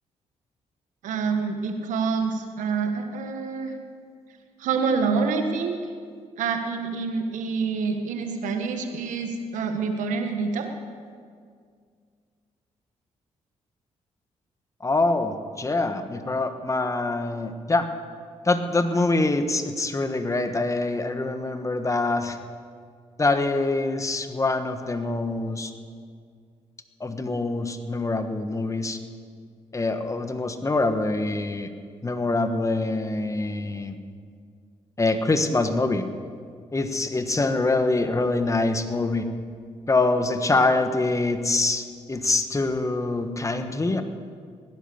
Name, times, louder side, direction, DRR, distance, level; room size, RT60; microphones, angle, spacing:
voice 1, 1.0-3.7 4.6-5.8 6.4-10.7, right 5 dB, 85° right, 5 dB, 1.4 m, -27 dB
voice 2, 14.8-17.9 18.4-22.4 23.2-25.7 27.0-29.0 29.7-31.7 32.0-34.0 35.0-36.1 36.7-39.3 39.9-44.0, left 2 dB, 25° left, 8 dB, 1.3 m, -24 dB
17.5 x 10.5 x 6.9 m, 2.1 s
cardioid pair, 65°, 13 cm